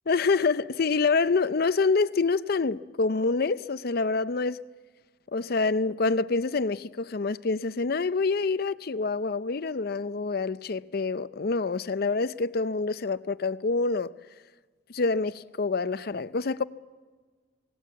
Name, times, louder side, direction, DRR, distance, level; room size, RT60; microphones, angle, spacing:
voice 1, 0.1-4.6 5.3-14.1 14.9-16.6, left 4 dB, 55° left, 0.6 m, -26 dB
25.0 x 18.0 x 8.2 m
head